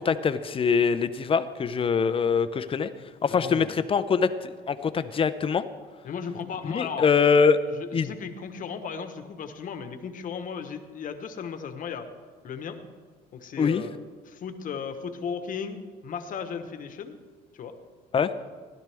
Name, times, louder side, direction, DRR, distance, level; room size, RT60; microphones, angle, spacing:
voice 1, 0.0-2.9 3.2-5.6 6.6-7.6 7.9-8.1 13.6-13.8 18.1-18.3, left 6 dB, 30° left, 12 dB, 0.7 m, -23 dB
voice 2, 3.2-3.8 6.0-7.1 7.8-12.1 12.4-12.8 13.3-13.9 14.3-17.2 17.5-17.7, left 6 dB, 50° left, 8 dB, 1.2 m, -36 dB
16.5 x 12.0 x 3.5 m, 1.5 s
cardioid pair, 110°, 17 cm